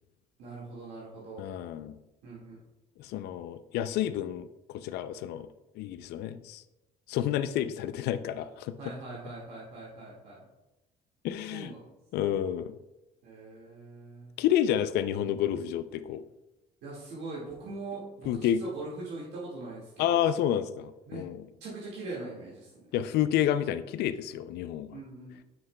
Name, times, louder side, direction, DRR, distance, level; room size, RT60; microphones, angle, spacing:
voice 1, 0.4-1.4 2.2-2.6 8.8-10.4 11.5-11.9 13.2-14.3 16.8-20.3 21.1-21.2 21.6-22.9 24.9-25.4, right 3 dB, 80° right, -7 dB, 1.9 m, -42 dB
voice 2, 1.4-2.0 3.0-5.5 5.8-6.6 7.1-8.7 11.2-11.7 12.1-12.8 14.4-16.2 18.3-18.6 20.0-21.4 22.9-25.0, left 11 dB, 75° left, 12 dB, 0.4 m, -29 dB
9.3 x 5.8 x 2.2 m, 1.0 s
cardioid pair, 110°, 17 cm